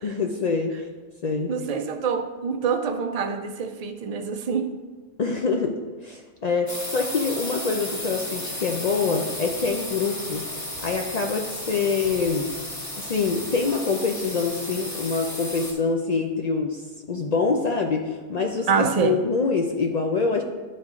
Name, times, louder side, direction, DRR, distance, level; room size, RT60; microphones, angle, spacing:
voice 1, 0.0-0.9 1.2-1.5 5.2-10.4 10.8-12.5 13.0-20.4, left 4 dB, 60° left, 2 dB, 0.4 m, -25 dB
voice 2, 1.5-4.8 18.7-19.2, right 6 dB, 70° right, 7 dB, 0.3 m, -25 dB
sound 1, 6.7-15.7, left 1 dB, 15° left, 0.8 m, -34 dB
10.5 x 3.9 x 3.6 m, 1.3 s
omnidirectional pair, 1.2 m